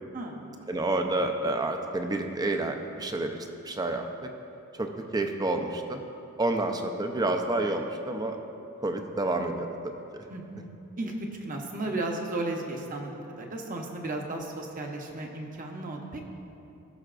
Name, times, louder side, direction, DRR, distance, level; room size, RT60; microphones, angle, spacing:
voice 1, 0.1-0.5 10.3-16.2, right 2 dB, 40° right, 1 dB, 0.9 m, -35 dB
voice 2, 0.7-3.4 3.6-4.3 4.8-6.0 6.4-8.4 8.8-10.2, right 2 dB, 20° right, 5 dB, 0.5 m, -29 dB
17.5 x 6.4 x 2.5 m, 2.8 s
head